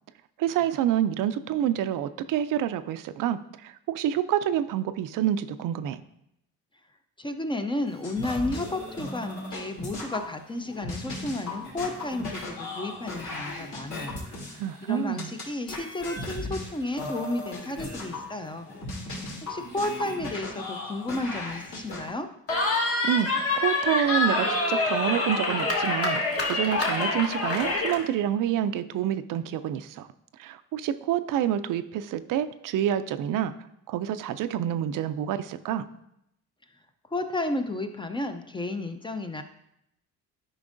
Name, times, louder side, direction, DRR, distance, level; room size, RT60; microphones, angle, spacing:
voice 1, 0.4-6.0 14.6-15.3 22.7-26.2 26.5-30.1 30.4-33.5 33.9-35.9, right 10 dB, 70° right, 12 dB, 0.5 m, -28 dB
voice 2, 7.2-14.2 14.8-18.7 19.4-22.3 37.1-39.4, left 2 dB, 15° left, 7 dB, 0.4 m, -32 dB
sound 1, 7.9-10.2 10.5-15.4 15.7-22.1, left 2 dB, 60° left, 2.6 m, -37 dB
Cheering, 22.5-28.0, left 2 dB, 45° left, 1.4 m, -26 dB
10.5 x 5.2 x 2.5 m, 0.79 s
cardioid pair, 115°, 34 cm